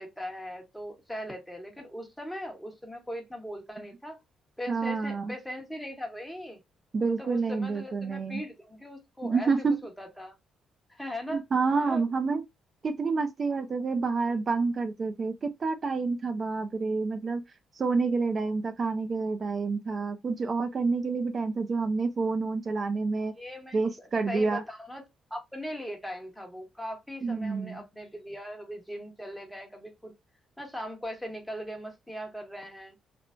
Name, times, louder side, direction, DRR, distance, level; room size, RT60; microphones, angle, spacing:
voice 1, 0.0-4.2 4.6-6.6 7.2-9.5 9.8-10.3 10.9-11.4 11.8-12.0 23.4-25.0 25.3-30.1 30.6-33.0, equal, ahead, 1.0 m, -39 dB
voice 2, 4.7-5.3 6.9-8.4 9.2-9.8 11.3-12.4 12.8-17.4 17.7-23.3 23.7-24.6 27.2-27.8, right 4 dB, 40° right, 0.3 m, -28 dB
3.0 x 2.0 x 2.4 m
cardioid pair, 90°, 0 cm